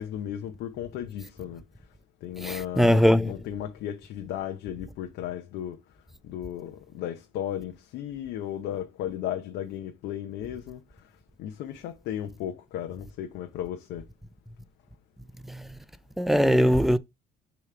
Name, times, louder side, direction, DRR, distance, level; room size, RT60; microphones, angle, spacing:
voice 1, 0.0-1.6 2.2-5.8 6.2-11.1 11.4-14.1, left 11 dB, 85° left, 0.8 m, -35 dB
voice 2, 2.4-3.3 15.5-15.6 16.2-17.0, equal, ahead, 0.5 m, -21 dB
6.5 x 3.1 x 5.0 m
cardioid pair, 110°, 17 cm